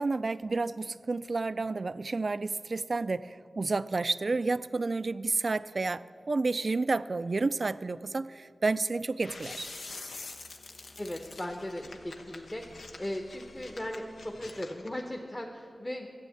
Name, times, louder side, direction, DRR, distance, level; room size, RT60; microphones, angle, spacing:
voice 1, 0.0-9.7, right 3 dB, 55° right, 15 dB, 0.3 m, -30 dB
sound 1, 9.2-15.0, left 3 dB, 85° left, 0.9 m, -46 dB
voice 2, 11.0-12.6 13.0-16.1, left 1 dB, 20° left, 2 dB, 1.0 m, -37 dB
13.0 x 8.4 x 7.8 m, 2.3 s
wide cardioid pair, 70°, 0 cm